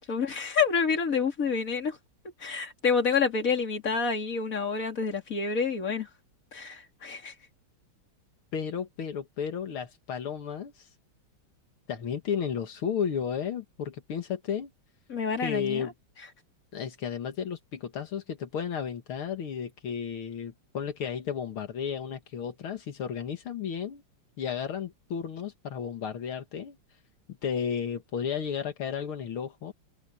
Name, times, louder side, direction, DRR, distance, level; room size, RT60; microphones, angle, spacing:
voice 1, 0.1-2.0 2.4-6.1 6.5-7.3 15.1-15.9, left 5 dB, 40° left, 3.4 m, -28 dB
voice 2, 8.5-10.9 11.9-14.7 15.4-15.9 16.7-24.0 24.4-26.8 27.4-29.7, left 7 dB, 80° left, 2.5 m, -33 dB
omnidirectional pair, 2.3 m